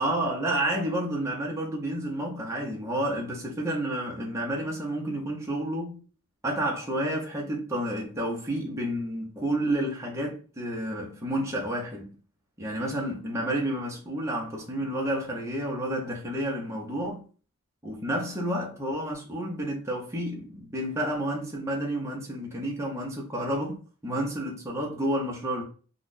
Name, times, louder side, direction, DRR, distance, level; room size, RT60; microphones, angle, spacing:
voice 1, 0.0-6.0 6.4-12.1 12.6-17.2 17.8-25.6, right 1 dB, 15° right, 0.6 m, -30 dB
2.5 x 2.4 x 3.7 m
head